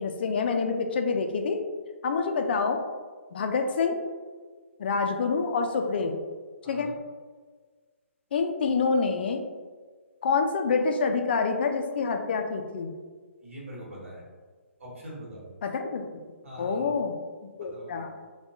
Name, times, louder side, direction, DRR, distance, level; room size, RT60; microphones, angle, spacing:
voice 1, 0.0-1.6 2.0-2.8 3.3-4.0 4.8-6.2 6.7-6.9 8.3-9.4 10.2-12.9 15.6-16.1 16.6-17.2 17.6-18.1, left 4 dB, 45° left, 5 dB, 0.3 m, -27 dB
voice 2, 6.6-6.9 13.4-14.2 14.8-15.5 16.4-17.0 17.6-18.1, equal, 65° right, -4 dB, 1.2 m, -43 dB
3.4 x 2.2 x 2.7 m, 1.5 s
figure-of-eight pair, 135°, 7 cm